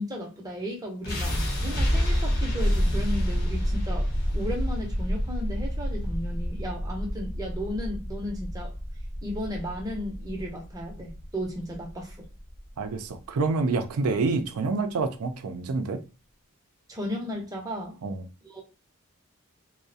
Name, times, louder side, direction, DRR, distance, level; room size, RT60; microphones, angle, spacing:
voice 1, 0.0-4.1 4.3-8.7 9.2-12.3 16.9-18.0 18.4-18.6, equal, 15° right, 0.5 m, -34 dB
sound 1, 1.0-13.1, equal, 45° left, 0.6 m, -28 dB
voice 2, 12.8-16.0 18.0-18.3, right 3 dB, 85° right, 0.4 m, -27 dB
2.3 x 2.0 x 2.6 m
head